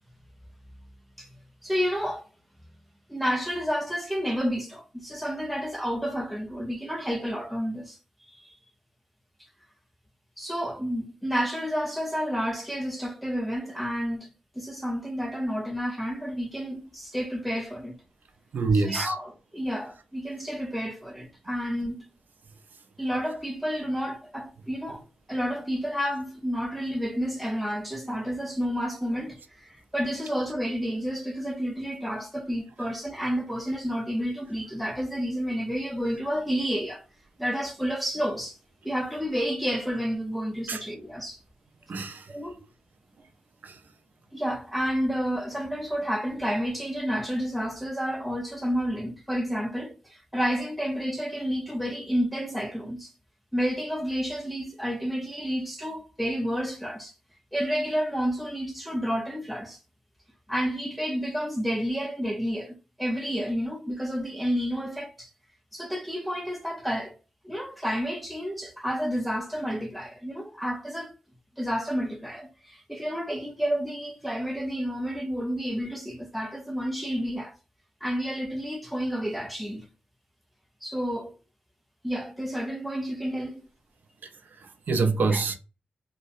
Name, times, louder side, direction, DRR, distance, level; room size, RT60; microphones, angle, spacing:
voice 1, 1.6-2.2 3.1-8.6 10.4-18.0 18.8-22.1 23.0-37.0 37.4-38.6 38.8-41.4 42.3-42.6 44.3-53.1 53.5-57.1 57.5-59.8 60.5-65.3 65.7-67.1 67.4-71.1 71.6-77.6 78.0-79.8 80.8-81.3 82.0-83.6 85.3-85.4, equal, ahead, 0.4 m, -30 dB
voice 2, 18.5-19.1 40.7-40.8 41.9-42.3 43.6-43.8 84.2-84.3 84.6-85.5, right 4 dB, 60° right, 0.5 m, -26 dB
2.7 x 2.1 x 2.4 m
wide cardioid pair, 180°, 3 cm